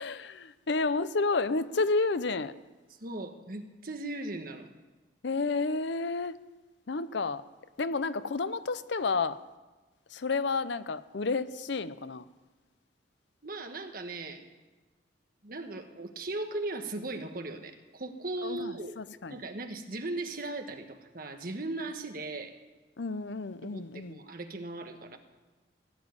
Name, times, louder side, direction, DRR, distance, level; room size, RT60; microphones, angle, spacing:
voice 1, 0.0-2.6 5.2-6.4 6.9-7.4 7.8-9.4 10.1-12.3 18.4-19.4 23.0-24.2, left 3 dB, 65° left, 0.6 m, -31 dB
voice 2, 3.0-4.7 13.4-14.4 15.4-19.0 19.3-22.5 23.6-25.2, right 2 dB, 45° right, 1.3 m, -38 dB
17.0 x 7.2 x 9.7 m
head